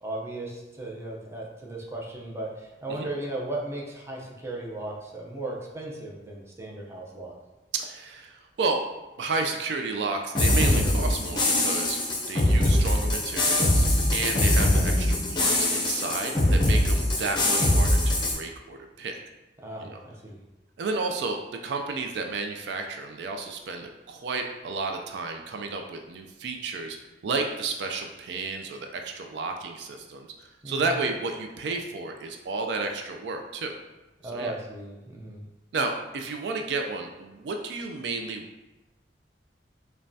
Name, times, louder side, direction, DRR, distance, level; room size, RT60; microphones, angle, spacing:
voice 1, 0.0-7.3 14.1-14.3 19.6-20.4 30.6-30.9 34.2-35.4, right 2 dB, 15° right, -3 dB, 0.6 m, -36 dB
voice 2, 7.7-8.8 9.2-12.0 12.3-19.2 19.8-20.0 20.8-27.0 27.2-33.7 34.3-34.6 35.7-38.4, right 3 dB, 75° right, 4 dB, 0.3 m, -32 dB
sound 1, 10.3-18.3, left 1 dB, 25° left, 0.7 m, -22 dB
5.1 x 2.2 x 2.7 m, 1.1 s
head